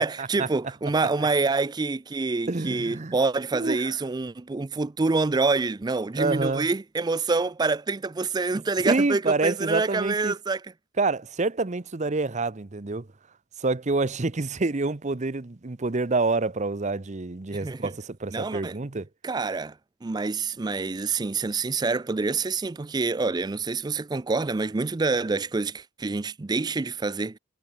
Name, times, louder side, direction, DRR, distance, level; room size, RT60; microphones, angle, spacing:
voice 1, 0.0-10.6 17.6-17.9 18.3-18.8 19.2-27.4, right 3 dB, 20° right, 0.4 m, -27 dB
voice 2, 2.5-3.2 3.5-4.0 6.1-6.7 8.8-10.3 11.0-13.1 13.6-19.1, right 3 dB, 35° right, 0.8 m, -27 dB
head